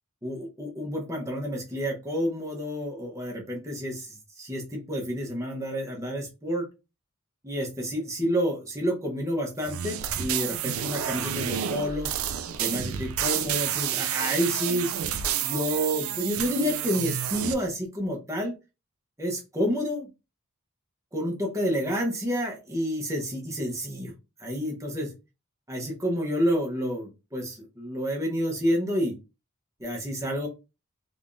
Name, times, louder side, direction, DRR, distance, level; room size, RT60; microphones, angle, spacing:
voice 1, 0.2-6.7 7.4-12.1 12.6-14.9 15.4-18.5 19.2-20.1 21.1-24.1 24.4-25.1 25.7-29.1 29.8-30.5, equal, 15° right, -1 dB, 1.0 m, -29 dB
sound 1, 9.6-17.5, right 9 dB, 70° right, 0.4 m, -30 dB
3.4 x 3.4 x 2.6 m, 0.28 s
head